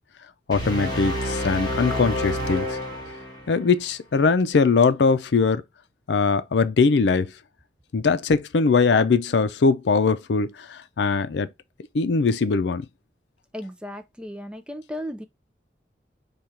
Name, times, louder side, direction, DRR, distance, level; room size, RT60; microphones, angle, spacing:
voice 1, 0.5-2.8 3.5-5.6 6.1-7.3 7.9-11.5 11.9-12.8, left 4 dB, 90° left, 0.5 m, -21 dB
sound 1, 0.5-3.7, equal, 25° left, 1.4 m, -28 dB
voice 2, 13.5-15.2, equal, 5° right, 0.4 m, -35 dB
5.0 x 2.4 x 4.3 m
head